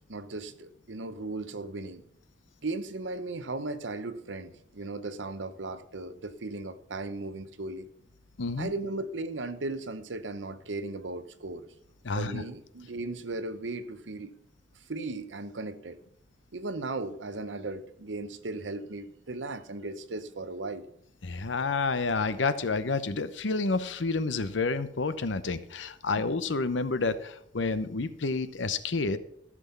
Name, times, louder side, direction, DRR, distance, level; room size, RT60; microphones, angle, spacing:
voice 1, 0.1-2.0 2.6-7.9 8.6-11.7 12.1-14.3 14.9-16.0 16.5-20.9, right 2 dB, 85° right, 0.9 m, -36 dB
voice 2, 8.4-8.7 12.0-12.4 21.2-29.2, left 3 dB, 90° left, 0.8 m, -29 dB
14.0 x 6.1 x 5.6 m
head